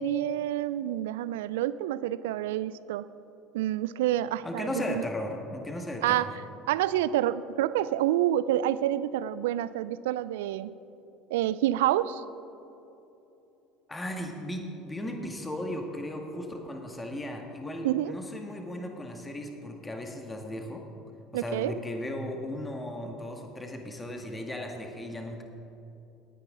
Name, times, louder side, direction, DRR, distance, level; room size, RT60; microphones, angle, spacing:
voice 1, 0.0-3.1 3.5-5.0 6.0-6.3 6.7-10.7 11.3-12.2 17.8-18.1 21.3-21.8, right 13 dB, 75° right, 16 dB, 0.4 m, -28 dB
voice 2, 4.4-6.3 13.9-20.8 21.3-25.4, left 1 dB, 15° left, 3 dB, 1.7 m, -36 dB
18.5 x 9.9 x 3.8 m, 2.9 s
hypercardioid pair, 65°, 0 cm